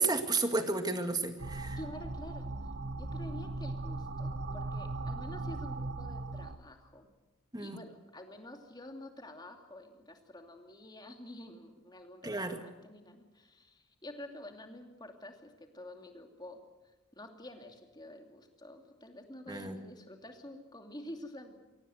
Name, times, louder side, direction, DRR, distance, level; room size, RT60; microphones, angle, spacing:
voice 1, 0.0-1.8 7.5-7.8 12.2-12.6 19.5-19.9, right 3 dB, 20° right, 7 dB, 1.9 m, -32 dB
sound 1, 1.4-6.6, right 2 dB, 50° right, 1.2 m, -38 dB
voice 2, 1.8-2.5 3.0-7.1 7.6-16.6 17.1-21.5, left 1 dB, 20° left, 4 dB, 2.7 m, -48 dB
24.0 x 18.0 x 8.0 m, 1.1 s
head